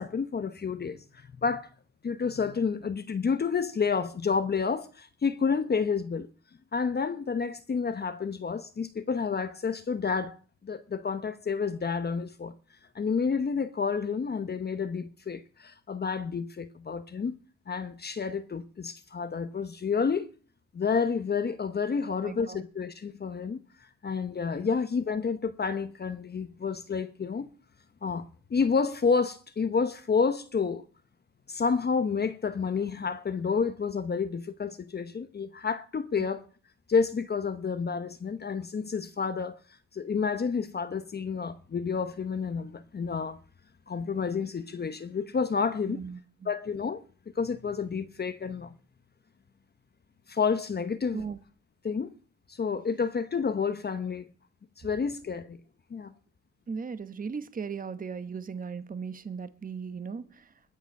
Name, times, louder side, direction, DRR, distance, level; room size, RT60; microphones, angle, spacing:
voice 1, 0.0-1.7 2.0-6.3 6.7-10.4 10.6-12.5 12.9-17.4 17.7-20.3 20.7-23.6 24.0-27.5 28.0-28.2 28.5-30.8 31.5-36.5 36.9-39.6 39.9-43.4 43.9-46.0 46.4-47.0 47.4-48.7 50.3-51.2 51.8-52.1 52.5-54.3 54.8-55.6 55.9-56.1, left 5 dB, 35° left, 1.0 m, -29 dB
voice 2, 22.2-22.6 36.2-36.3 45.9-46.5 51.1-51.4 56.7-60.5, right 5 dB, 30° right, 1.0 m, -37 dB
21.0 x 7.0 x 5.4 m
cardioid pair, 90°, 30 cm